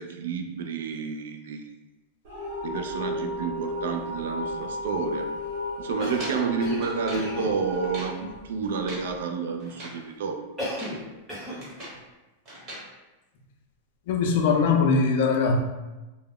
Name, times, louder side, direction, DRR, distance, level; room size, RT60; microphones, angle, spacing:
voice 1, 0.0-1.6 2.6-5.3 5.8-10.4, right 5 dB, 80° right, 5 dB, 0.4 m, -30 dB
sound 1, 2.2-9.2, left 2 dB, 55° right, 0.9 m, -34 dB
Cough, 6.0-7.6 10.6-11.0 11.3-11.7, equal, 5° right, 0.7 m, -34 dB
sound 2, 6.1-7.3 7.7-8.2 8.6-9.1 9.6-10.0 10.6-11.0 11.3-12.0 12.5-12.9, right 1 dB, 25° right, 1.0 m, -41 dB
voice 2, 14.1-15.6, left 4 dB, 55° left, 2 dB, 0.4 m, -21 dB
2.3 x 2.0 x 3.5 m, 1.1 s
supercardioid pair, 165°, 0 cm